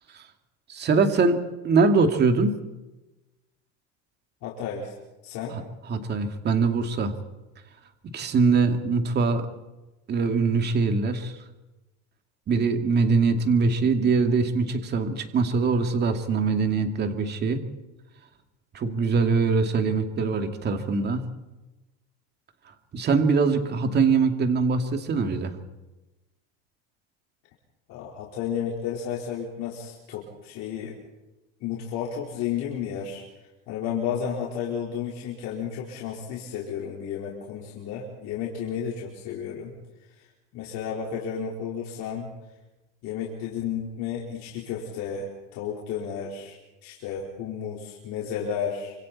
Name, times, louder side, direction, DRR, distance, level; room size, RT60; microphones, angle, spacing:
voice 1, 0.7-1.4 1.6-2.6 5.9-7.1 8.1-9.5 10.1-11.3 12.5-17.6 18.7-21.2 22.9-25.5, right 4 dB, 30° right, 6 dB, 2.4 m, -22 dB
voice 2, 4.4-4.9 5.2-5.6 27.9-31.0 31.6-33.2 33.7-39.7 40.2-40.3 40.5-42.3 43.0-48.9, left 7 dB, 60° left, -3 dB, 4.3 m, -32 dB
27.5 x 26.0 x 4.3 m, 1.1 s
cardioid pair, 140°, 31 cm